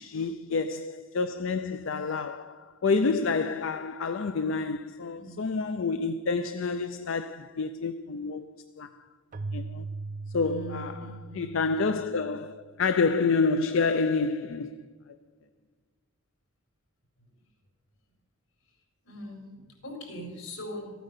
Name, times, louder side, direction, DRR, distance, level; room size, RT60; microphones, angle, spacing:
voice 1, 0.0-9.0 9.5-9.9 10.3-11.1 11.3-14.8, left 4 dB, 65° left, 0.5 m, -28 dB
voice 2, 5.1-5.5 10.4-11.5 19.0-20.9, equal, 85° left, 4.3 m, -41 dB
Keyboard (musical), 9.3-12.8, right 3 dB, 40° right, 0.4 m, -40 dB
14.0 x 9.2 x 6.7 m
head